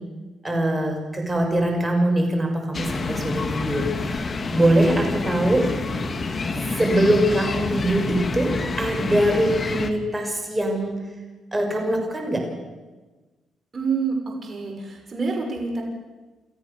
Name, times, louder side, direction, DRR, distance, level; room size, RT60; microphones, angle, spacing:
voice 1, 0.4-5.7 6.7-11.0 11.5-12.5, right 1 dB, 15° right, 2 dB, 6.0 m, -22 dB
sound 1, 2.7-9.9, left 3 dB, 40° left, 2.0 m, -28 dB
voice 2, 13.7-14.2 14.4-15.8, right 5 dB, 35° right, 1 dB, 6.1 m, -27 dB
29.5 x 14.0 x 7.0 m, 1.2 s
cardioid pair, 90°, 0 cm